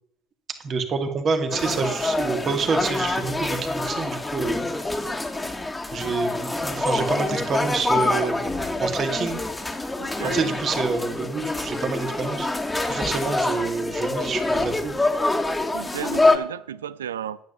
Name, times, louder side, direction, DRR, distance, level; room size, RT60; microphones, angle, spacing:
voice 1, 0.6-4.6 5.9-8.4 8.8-9.4 10.3-12.5 12.8-14.9, right 4 dB, 45° right, 2.2 m, -27 dB
sound 1, 1.5-16.4, left 2 dB, 15° left, 1.9 m, -26 dB
voice 2, 10.0-10.5 15.7-17.4, right 9 dB, 85° right, 0.4 m, -33 dB
10.5 x 9.5 x 6.9 m
hypercardioid pair, 60°, 0 cm